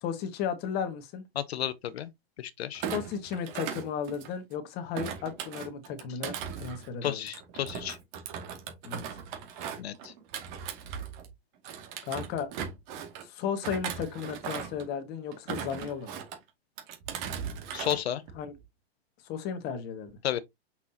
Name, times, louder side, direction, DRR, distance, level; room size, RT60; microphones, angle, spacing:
voice 1, 0.0-1.2 2.9-7.3 8.8-9.2 12.1-12.5 13.2-16.2 18.3-18.5 19.2-20.1, left 7 dB, 30° left, 1.7 m, -34 dB
voice 2, 1.4-2.1 2.4-2.8 7.0-8.0 9.8-10.1 17.7-18.2 20.2-20.4, left 11 dB, 85° left, 0.9 m, -32 dB
Thump thud, 2.7-4.5 4.9-11.3 11.6-13.2 13.6-14.9 15.3-16.4 16.8-18.0 18.3-18.6, right 8 dB, 45° right, 2.3 m, -38 dB
6.0 x 5.9 x 2.8 m
hypercardioid pair, 145°, 31 cm